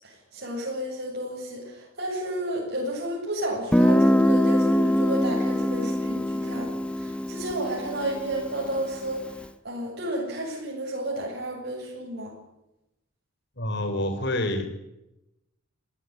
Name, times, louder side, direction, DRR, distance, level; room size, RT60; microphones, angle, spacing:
voice 1, 0.0-12.4, right 1 dB, 50° right, -2 dB, 7.9 m, -32 dB
Guitar, 3.7-9.3, equal, 5° left, 0.9 m, -23 dB
voice 2, 13.6-14.8, left 1 dB, 55° left, 8 dB, 3.5 m, -27 dB
22.0 x 17.0 x 9.2 m, 0.92 s
head